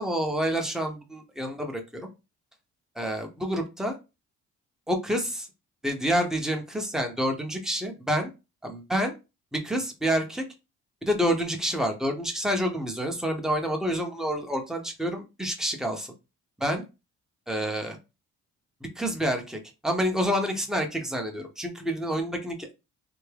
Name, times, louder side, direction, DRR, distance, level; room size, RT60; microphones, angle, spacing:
voice 1, 0.0-2.1 3.0-3.9 4.9-5.5 5.8-8.3 8.6-9.1 9.5-10.4 11.0-16.1 16.6-16.8 17.5-18.0 18.8-22.7, equal, ahead, 3 dB, 0.8 m, -28 dB
3.5 x 2.0 x 3.3 m, 0.27 s
cardioid pair, 90°, 30 cm